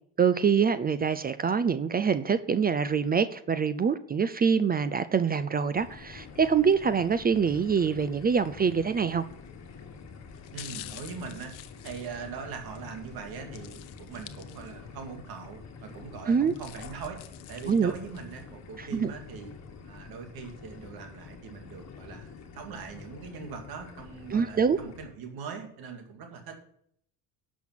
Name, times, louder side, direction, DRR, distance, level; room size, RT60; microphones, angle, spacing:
voice 1, 0.2-9.2 16.3-16.5 17.7-17.9 18.8-19.1 24.3-24.8, right 6 dB, 25° right, 14 dB, 0.5 m, -25 dB
sound 1, 5.7-25.1, left 5 dB, 45° left, 1.9 m, -47 dB
sound 2, 9.3-9.6 10.3-12.8 13.5-15.0 15.4-15.5 16.2-18.4 18.9-19.0, left 14 dB, 75° left, 1.0 m, -48 dB
voice 2, 10.5-11.5 11.8-17.2 17.5-19.5 19.8-26.6, right 5 dB, 65° right, 4 dB, 2.4 m, -41 dB
11.5 x 6.3 x 5.8 m, 0.66 s
supercardioid pair, 100°, 39 cm